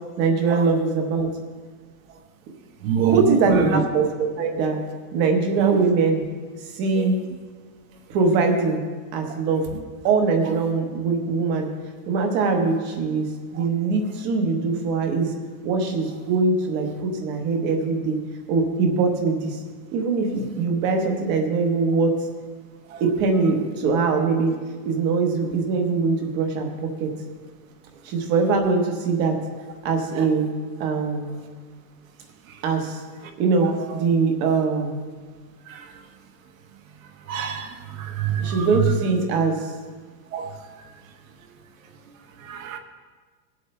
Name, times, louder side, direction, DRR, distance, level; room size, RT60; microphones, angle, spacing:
voice 1, 0.2-1.3 3.1-4.8 5.1-6.2 6.6-7.2 8.1-8.8 9.1-9.7 10.0-11.7 12.1-13.3 13.5-15.3 15.6-18.2 18.5-19.6 19.9-22.1 23.0-24.5 24.8-27.1 28.0-29.4 29.8-30.5 30.8-31.3 32.6-33.0 33.4-35.0 38.4-39.7, right 4 dB, 20° right, 1.0 m, -22 dB
voice 2, 2.8-3.2 3.7-3.8 5.6-5.7 37.3-37.6 38.2-38.5 40.3-40.5 42.5-42.8, right 9 dB, 55° right, 1.3 m, -24 dB
19.0 x 8.0 x 3.3 m
supercardioid pair, 175°, 49 cm